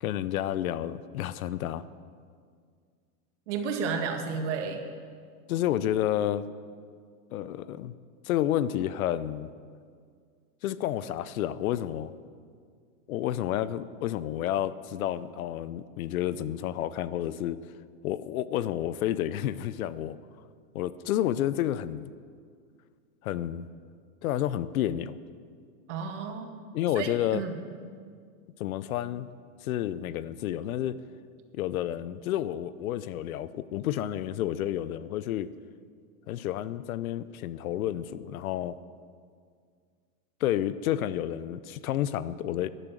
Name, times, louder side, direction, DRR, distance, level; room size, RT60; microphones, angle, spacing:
voice 1, 0.0-1.9 5.5-6.5 7.3-8.0 8.2-9.5 10.6-12.1 13.1-17.6 18.0-20.2 20.7-22.1 23.2-23.6 24.2-25.1 26.7-27.4 28.6-29.3 29.6-31.0 31.5-35.5 36.3-38.8 40.4-42.7, left 12 dB, 65° left, 16 dB, 0.7 m, -30 dB
voice 2, 3.5-4.8 25.9-26.5 27.0-27.6, right 5 dB, 50° right, 4 dB, 1.9 m, -32 dB
13.0 x 11.0 x 7.6 m, 2.1 s
supercardioid pair, 170°, 45 cm